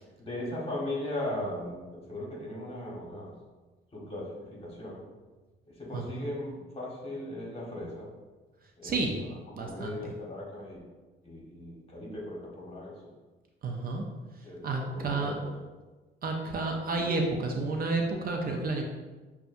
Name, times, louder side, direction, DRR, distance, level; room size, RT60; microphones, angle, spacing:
voice 1, 0.2-3.3 3.9-5.0 5.7-8.1 8.8-9.3 9.6-10.8 11.2-12.9 14.4-15.5, left 1 dB, 30° left, -3 dB, 1.4 m, -38 dB
voice 2, 5.9-6.3 8.8-9.1 9.6-10.0 13.6-14.0 14.6-15.4 16.2-18.8, right 3 dB, 50° right, 2 dB, 0.6 m, -30 dB
6.7 x 2.3 x 2.6 m, 1.3 s
cardioid pair, 90°, 20 cm